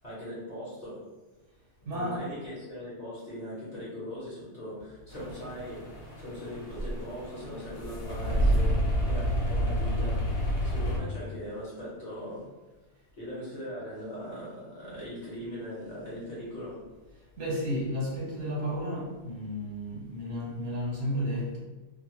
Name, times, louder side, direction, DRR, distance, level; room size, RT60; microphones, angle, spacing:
voice 1, 0.0-1.1 1.9-12.5 13.2-16.8, equal, 35° left, -10 dB, 1.2 m, -40 dB
voice 2, 1.8-2.2 17.4-21.6, equal, 70° right, -5 dB, 1.2 m, -32 dB
sound 1, 5.1-11.0, equal, 85° left, 1.0 m, -29 dB
2.7 x 2.3 x 3.0 m, 1.2 s
omnidirectional pair, 1.3 m